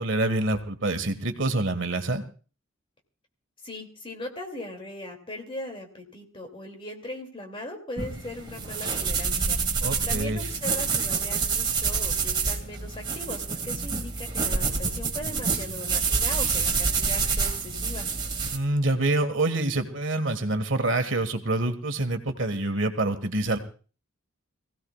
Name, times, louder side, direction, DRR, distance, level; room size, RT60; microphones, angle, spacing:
voice 1, 0.0-2.2 9.8-10.4 18.5-23.6, right 2 dB, 70° right, 7 dB, 1.7 m, -26 dB
voice 2, 3.6-18.1, left 1 dB, 25° left, 3 dB, 2.6 m, -39 dB
sound 1, 8.0-18.6, right 5 dB, 25° right, 2.2 m, -27 dB
25.0 x 16.5 x 2.4 m, 0.37 s
head